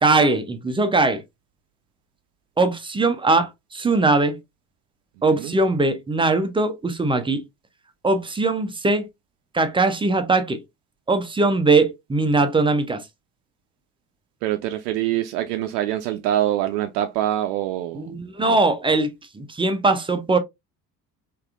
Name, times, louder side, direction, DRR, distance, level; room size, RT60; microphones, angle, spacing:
voice 1, 0.0-1.2 2.6-4.4 5.2-7.4 8.0-9.1 9.5-10.6 11.1-13.1 17.9-20.4, right 3 dB, 10° right, 0.4 m, -20 dB
voice 2, 14.4-18.1 18.5-18.6, right 12 dB, 70° right, 0.5 m, -25 dB
3.4 x 2.3 x 2.3 m
figure-of-eight pair, 55°, 50 cm